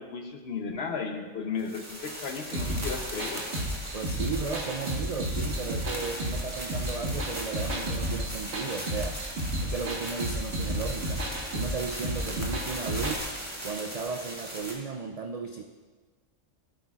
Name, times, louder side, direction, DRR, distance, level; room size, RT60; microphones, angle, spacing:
voice 1, 0.0-3.4, left 5 dB, 55° left, 5 dB, 1.1 m, -34 dB
sound 1, 1.6-14.7, right 1 dB, 10° right, 1.6 m, -39 dB
sound 2, 2.5-13.2, equal, 60° right, 1.7 m, -33 dB
voice 2, 3.9-9.2 9.6-11.2 11.5-13.2 13.6-15.6, right 5 dB, 80° right, 4 dB, 0.3 m, -35 dB
15.5 x 8.1 x 2.4 m, 1.4 s
omnidirectional pair, 1.3 m